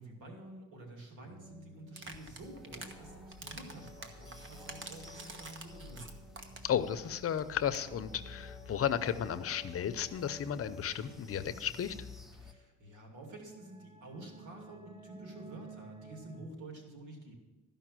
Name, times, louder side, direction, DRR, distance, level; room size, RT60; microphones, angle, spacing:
voice 1, 0.0-6.1 12.3-17.3, right 2 dB, 85° right, 1 dB, 2.6 m, -49 dB
sound 1, 1.2-16.4, right 1 dB, 20° right, 2.6 m, -54 dB
sound 2, 1.9-2.9 3.3-6.8 7.0-7.1 7.4-7.5 7.7-7.9, right 3 dB, 40° right, 1.3 m, -47 dB
sound 3, 2.0-12.5, left 2 dB, ahead, 0.7 m, -53 dB
voice 2, 6.6-12.0, left 9 dB, 50° left, 13 dB, 0.7 m, -34 dB
13.0 x 5.4 x 7.6 m, 1.1 s
cardioid pair, 90°, 30 cm